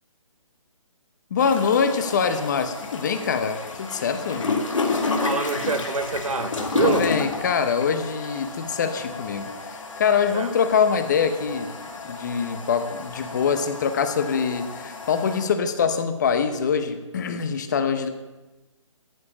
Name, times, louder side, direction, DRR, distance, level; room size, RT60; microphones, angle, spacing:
voice 1, 1.3-4.5 6.8-9.5 10.0-11.7 12.0-18.1, left 6 dB, 35° left, 9 dB, 0.8 m, -24 dB
sound 1, 1.4-15.4, left 4 dB, 70° left, 2.1 m, -31 dB
voice 2, 5.2-7.1 10.3-10.5, right 4 dB, 85° right, 7 dB, 1.4 m, -26 dB
13.5 x 5.0 x 7.1 m, 1.1 s
hypercardioid pair, 160°, 17 cm